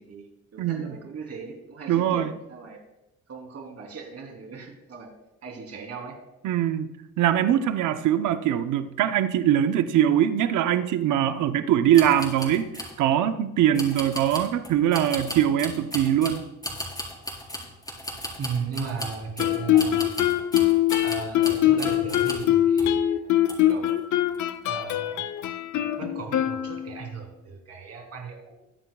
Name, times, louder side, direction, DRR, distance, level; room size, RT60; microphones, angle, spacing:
voice 1, 0.0-2.8 3.3-5.1 5.4-6.2 18.4-20.2 21.0-23.3 23.7-24.0 24.6-25.3 26.0-28.5, right 4 dB, 55° right, 2 dB, 3.2 m, -37 dB
voice 2, 0.6-0.9 1.9-2.3 6.4-6.9 7.2-12.7 13.0-16.4, right 10 dB, 80° right, 9 dB, 0.8 m, -22 dB
sound 1, 11.9-13.0 13.7-22.5 22.8-23.0 23.5-23.9 24.3-24.4, left 1 dB, 15° left, 4.7 m, -36 dB
Guitar, 19.4-27.1, left 12 dB, 75° left, 0.8 m, -23 dB
22.0 x 9.7 x 2.3 m, 0.93 s
cardioid pair, 90°, 30 cm